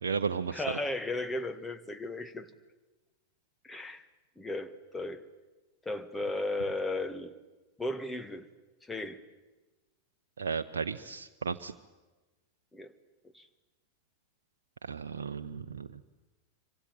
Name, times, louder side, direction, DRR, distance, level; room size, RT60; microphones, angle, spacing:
voice 1, 0.0-0.8 10.4-11.7 14.8-16.0, right 6 dB, 65° right, 7 dB, 0.8 m, -34 dB
voice 2, 0.5-2.5 3.6-4.0 4.4-5.3 5.8-7.3 7.8-8.5 8.8-9.2 12.7-12.9 13.3-13.5, left 2 dB, 10° left, 10 dB, 1.7 m, -35 dB
26.5 x 24.5 x 9.1 m, 1.2 s
figure-of-eight pair, 90°, 0 cm